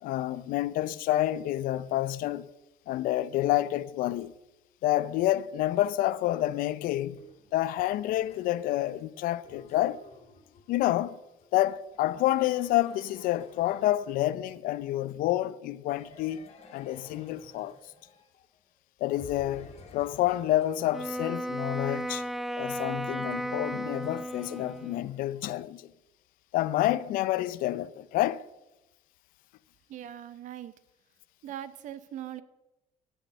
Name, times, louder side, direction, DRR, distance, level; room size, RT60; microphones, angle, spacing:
voice 1, 0.0-2.5 2.9-4.3 4.8-7.2 7.5-10.0 10.7-11.2 11.5-16.4 16.7-17.7 19.0-22.2 22.6-25.9 26.5-28.5, left 14 dB, 75° left, 0.6 m, -28 dB
sound 1, 7.2-14.6 15.9-18.7 19.1-25.6, left 4 dB, 45° left, 2.3 m, -54 dB
Wind instrument woodwind instrument, 20.9-25.1, right 1 dB, ahead, 0.3 m, -34 dB
voice 2, 29.9-30.8 31.4-32.4, right 11 dB, 60° right, 0.8 m, -40 dB
16.5 x 6.5 x 6.5 m
cardioid pair, 130°, 14 cm